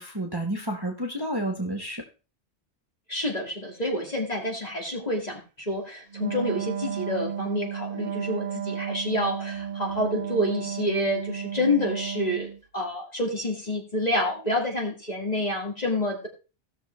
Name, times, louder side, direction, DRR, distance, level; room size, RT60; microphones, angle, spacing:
voice 1, 0.0-2.0, right 1 dB, 20° right, 1 dB, 1.2 m, -30 dB
voice 2, 3.1-16.3, left 1 dB, 35° left, 0 dB, 2.4 m, -28 dB
Wind instrument woodwind instrument, 6.1-12.6, right 8 dB, 55° right, 0.7 m, -33 dB
17.0 x 6.5 x 3.3 m, 0.32 s
omnidirectional pair, 1.2 m